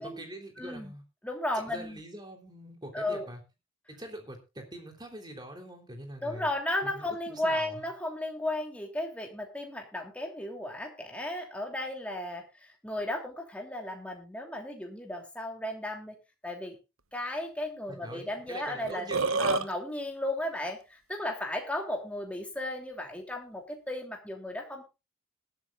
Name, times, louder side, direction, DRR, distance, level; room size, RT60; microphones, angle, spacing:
voice 1, 0.0-1.0 1.7-3.4 3.9-6.5 6.8-7.9 17.9-19.7, right 1 dB, 20° right, 3 dB, 3.4 m, -44 dB
voice 2, 0.6-0.9 1.2-2.0 2.9-3.3 6.2-16.1 16.4-16.8 17.1-19.1 19.4-24.8, left 1 dB, 5° left, 1 dB, 2.9 m, -35 dB
Burping eructation, 18.5-18.6 18.8-19.7, right 4 dB, 75° right, 1.1 m, -27 dB
20.5 x 12.0 x 2.5 m, 0.28 s
head